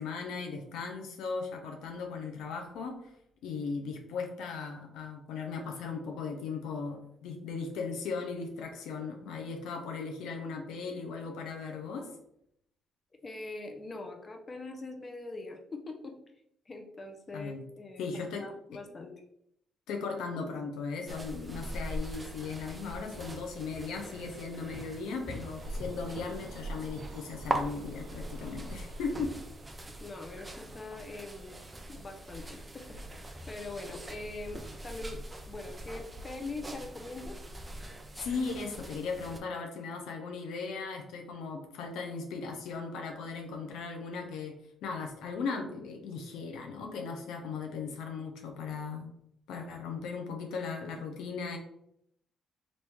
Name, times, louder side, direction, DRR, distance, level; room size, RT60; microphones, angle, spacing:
voice 1, 0.0-3.0 3.4-12.1 17.3-17.6 18.0-18.5 18.7-18.8 19.9-29.4 38.2-44.5 44.8-49.1 49.5-51.6, left 4 dB, 80° left, 2 dB, 0.6 m, -37 dB
voice 2, 13.2-16.2 16.7-18.0 18.4-19.1 30.0-31.5 31.9-33.0 33.4-37.4, left 3 dB, 35° left, 4 dB, 0.6 m, -42 dB
Footsteps carpet shoes towards and away, 21.1-39.4, right 1 dB, 20° right, 0.5 m, -42 dB
sound 1, 25.6-30.6, right 1 dB, 75° right, 0.7 m, -44 dB
3.1 x 2.6 x 3.4 m, 0.76 s
cardioid pair, 80°, 0 cm